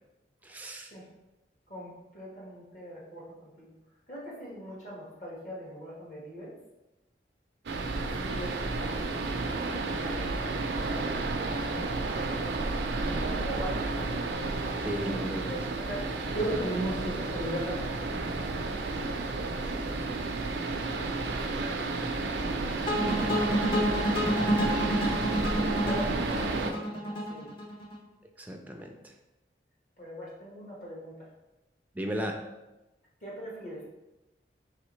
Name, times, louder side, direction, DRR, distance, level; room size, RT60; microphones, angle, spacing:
voice 1, 0.4-0.9 14.8-15.5 28.4-29.1 31.9-32.4, equal, 10° right, 2 dB, 0.4 m, -35 dB
voice 2, 1.7-3.7 4.1-6.5 8.2-10.5 11.3-12.6 13.0-14.1 15.0-15.1 15.5-16.1 16.3-20.2 21.2-23.2 25.8-27.5 30.0-31.3 33.2-33.8, right 1 dB, 45° left, -5 dB, 1.5 m, -40 dB
sound 1, 7.7-26.7, right 3 dB, 80° right, 0.5 m, -31 dB
sound 2, 22.9-28.0, equal, 30° left, 0.8 m, -29 dB
4.8 x 3.4 x 3.1 m, 1.0 s
head